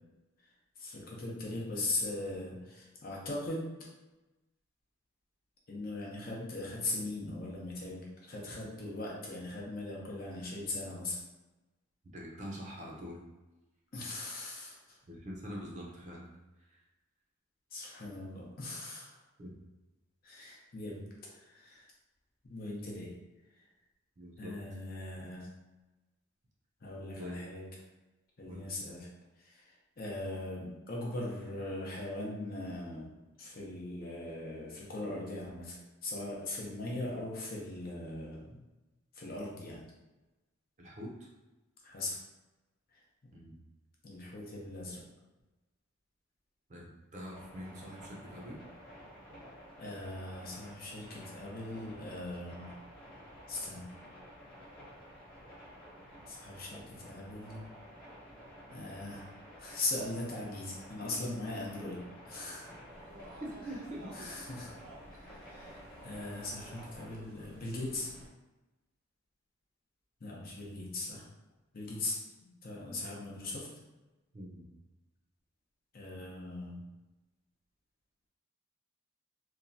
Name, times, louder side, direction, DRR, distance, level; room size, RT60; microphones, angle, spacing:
voice 1, 0.8-3.6 5.7-11.2 13.9-15.0 17.7-19.2 20.2-21.1 21.3-21.9 22.5-23.1 24.4-25.5 26.8-27.7 28.4-29.1 29.4-33.1 33.4-38.6 39.1-39.8 41.8-42.2 44.0-45.0 49.8-52.7 53.5-53.9 56.3-57.7 58.7-59.3 59.6-62.0 62.2-62.7 64.1-64.7 65.1-68.1 70.2-71.2 71.7-72.2 72.6-73.7 75.9-76.8, left 2 dB, 45° left, -3 dB, 0.6 m, -40 dB
voice 2, 12.1-13.2 15.0-16.3 16.6-16.8 19.4-19.5 24.2-24.5 27.2-27.4 28.5-28.7 40.8-41.3 43.3-43.6 46.7-48.6 63.4-64.1 74.3-74.7, equal, 35° right, -2 dB, 0.5 m, -44 dB
sound 1, 47.3-67.2, equal, 20° left, 1.1 m, -52 dB
sound 2, 62.9-68.3, right 1 dB, 85° right, 0.6 m, -54 dB
2.9 x 2.2 x 2.6 m, 1.1 s
head